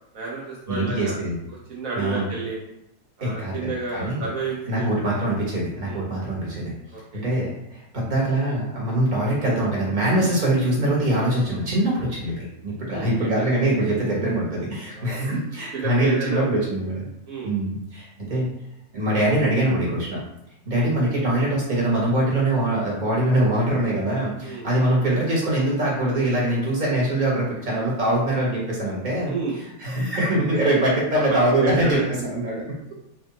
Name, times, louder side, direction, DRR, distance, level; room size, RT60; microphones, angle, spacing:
voice 1, 0.1-1.2 1.7-2.6 3.2-4.9 5.8-6.0 6.9-7.2 10.2-10.4 12.2-12.4 12.9-13.4 15.0-15.3 15.7-16.5 17.3-17.5 20.7-20.9 24.4-24.6 29.3-29.6 30.5-30.6 31.3-32.0, right 4 dB, 70° right, -5 dB, 1.1 m, -31 dB
voice 2, 0.7-1.3 1.9-2.3 3.2-4.3 4.7-6.7 7.1-17.1 17.4-18.5 18.9-20.2 20.6-32.7, right 1 dB, 35° right, -5 dB, 1.3 m, -23 dB
3.1 x 2.9 x 4.0 m, 0.84 s
omnidirectional pair, 1.5 m